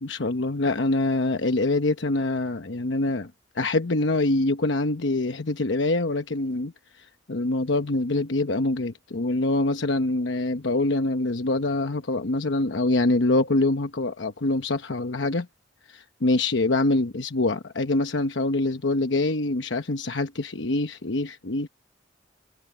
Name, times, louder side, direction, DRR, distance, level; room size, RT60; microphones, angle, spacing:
voice 1, 0.0-3.3 3.5-6.7 7.3-15.5 15.9-21.7, left 2 dB, 75° left, 1.0 m, -25 dB
open air
head